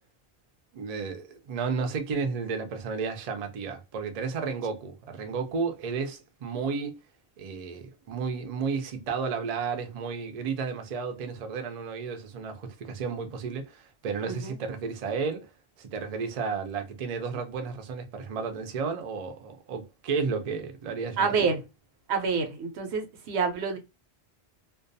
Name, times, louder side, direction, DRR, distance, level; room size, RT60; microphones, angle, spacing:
voice 1, 0.7-6.9 7.4-15.5 15.8-21.5, right 5 dB, 50° right, 0.5 m, -32 dB
voice 2, 21.2-21.6 22.1-23.8, right 5 dB, 85° right, 0.9 m, -27 dB
2.3 x 2.2 x 2.6 m
omnidirectional pair, 1.1 m